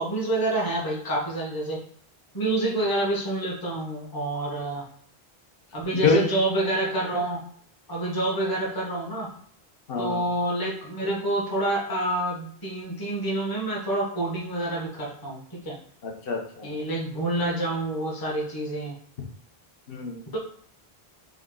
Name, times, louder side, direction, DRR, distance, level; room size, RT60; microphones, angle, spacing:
voice 1, 0.0-1.8 2.3-4.9 5.7-7.4 7.9-9.3 10.0-15.8 16.6-19.0 20.3-20.4, right 1 dB, 20° left, -3 dB, 0.9 m, -27 dB
voice 2, 9.9-10.2 16.0-16.7 19.9-20.4, left 4 dB, 65° left, 1 dB, 1.1 m, -25 dB
3.7 x 2.6 x 3.7 m, 0.63 s
omnidirectional pair, 1.0 m